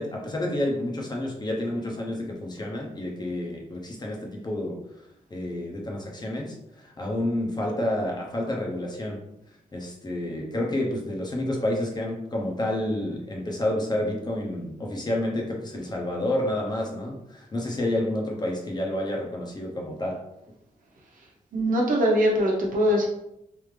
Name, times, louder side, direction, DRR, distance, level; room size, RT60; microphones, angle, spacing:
voice 1, 0.0-4.8 5.3-9.2 9.7-20.2, left 1 dB, 30° left, -1 dB, 0.9 m, -29 dB
voice 2, 21.5-23.0, equal, 75° right, -2 dB, 1.0 m, -22 dB
3.4 x 2.7 x 3.3 m, 0.82 s
cardioid pair, 85°, 14 cm